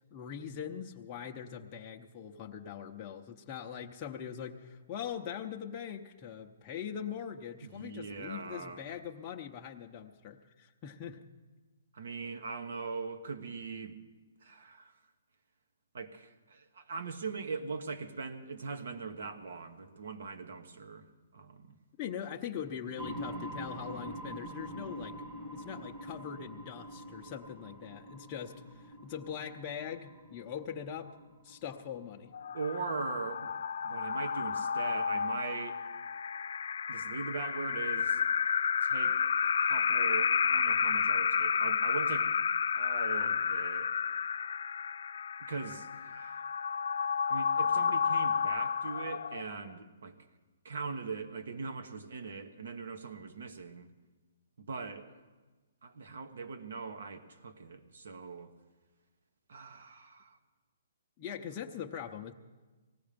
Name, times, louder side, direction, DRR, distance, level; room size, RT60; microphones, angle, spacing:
voice 1, 0.1-11.2 22.0-25.2 25.5-31.2 31.4-32.3 61.2-62.3, left 8 dB, 25° left, 1 dB, 0.7 m, -42 dB
voice 2, 7.6-9.0 11.9-14.0 14.4-14.9 15.9-21.1 21.3-21.8 32.5-33.5 33.8-35.8 36.9-38.2 38.8-42.3 42.8-43.9 45.4-46.5 47.3-50.1 50.6-53.9 54.6-55.1 55.8-58.5 59.5-60.4, right 4 dB, 70° right, 7 dB, 1.4 m, -41 dB
sound 1, 23.0-32.5, equal, 25° right, 1.2 m, -45 dB
sound 2, 32.3-49.7, left 7 dB, 70° left, 0.4 m, -31 dB
18.0 x 15.0 x 5.2 m, 1.3 s
hypercardioid pair, 160°, 0 cm